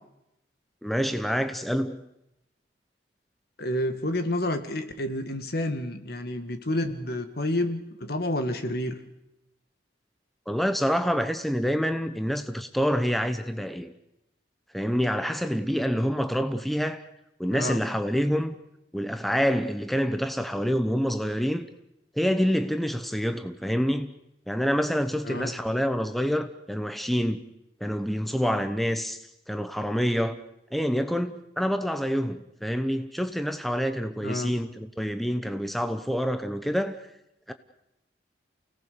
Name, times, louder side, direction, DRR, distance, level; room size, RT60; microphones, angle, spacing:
voice 1, 0.8-2.0 10.5-13.9 14.7-17.0 17.4-18.5 18.9-21.7 22.2-24.1 24.5-27.4 27.8-30.4 30.7-37.0 37.5-37.6, equal, ahead, 0.9 m, -27 dB
voice 2, 3.6-9.0 17.5-17.8 25.3-25.6 34.2-34.6, left 1 dB, 60° left, 1.9 m, -29 dB
29.0 x 18.0 x 6.8 m
head